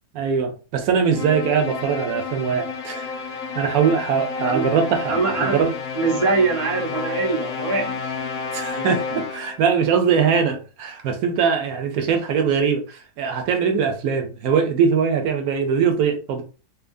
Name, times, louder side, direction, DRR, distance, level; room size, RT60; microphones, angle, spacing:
voice 1, 0.1-5.7 8.5-16.4, right 6 dB, 70° right, 1.0 m, -22 dB
sound 1, 1.1-9.7, left 5 dB, 70° left, 0.9 m, -30 dB
voice 2, 5.1-5.6 5.9-8.1 8.7-8.9, right 4 dB, 50° right, 0.3 m, -23 dB
2.8 x 2.6 x 2.5 m
omnidirectional pair, 1.7 m